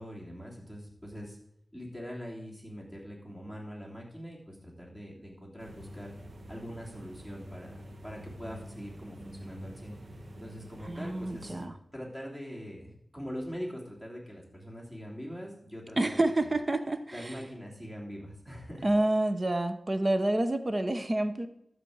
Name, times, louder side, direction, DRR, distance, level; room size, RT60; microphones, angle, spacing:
voice 1, 0.0-1.4 1.7-6.1 6.5-7.8 8.0-9.9 10.4-11.5 11.9-16.2 17.1-18.9, equal, 15° right, -3 dB, 3.4 m, -42 dB
sound 1, 5.6-11.7, equal, 60° right, 1.2 m, -47 dB
voice 2, 10.8-11.7 16.0-17.3 18.8-21.5, right 1 dB, 35° right, 9 dB, 0.9 m, -28 dB
12.5 x 4.4 x 8.0 m, 0.74 s
wide cardioid pair, 85°, 0 cm